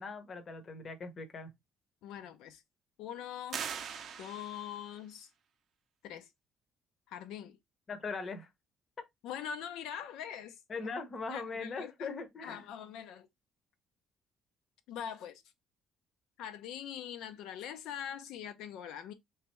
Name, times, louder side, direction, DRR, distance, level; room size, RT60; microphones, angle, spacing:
voice 1, 0.0-1.5 7.9-8.5 10.7-12.7, left 4 dB, 30° left, 0.7 m, -40 dB
voice 2, 2.0-2.6 3.0-3.6 4.2-5.3 6.0-6.3 7.1-7.6 9.2-10.9 11.3-12.1 12.4-13.3 14.9-15.4 16.4-19.1, left 9 dB, 85° left, 0.5 m, -43 dB
sound 1, 3.5-4.9, right 7 dB, 45° right, 0.5 m, -41 dB
3.3 x 3.2 x 3.0 m
cardioid pair, 170°, 0 cm